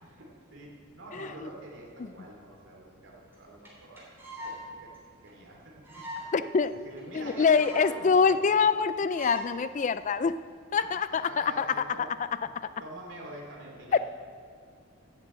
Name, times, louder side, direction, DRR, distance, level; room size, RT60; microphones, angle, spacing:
voice 1, 0.0-4.1 4.4-4.9 5.2-6.2 6.7-8.4 10.8-12.1 12.4-12.5 12.8-14.0, right 1 dB, 60° right, -2 dB, 2.9 m, -46 dB
voice 2, 1.1-1.5 6.3-6.7 7.1-10.4 10.7-11.7 13.9-14.0, left 5 dB, 35° left, 13 dB, 0.3 m, -25 dB
sound 1, 3.3-3.4 3.6-3.7 4.0-4.6 4.9-5.0 5.3-5.4 5.8-6.3 6.6-6.7 7.0-7.1 7.3-7.9 8.3-8.4 8.5-8.8 9.1-9.5 10.1-10.4, left 1 dB, 10° right, 3.0 m, -41 dB
11.0 x 7.5 x 8.5 m, 2.2 s
head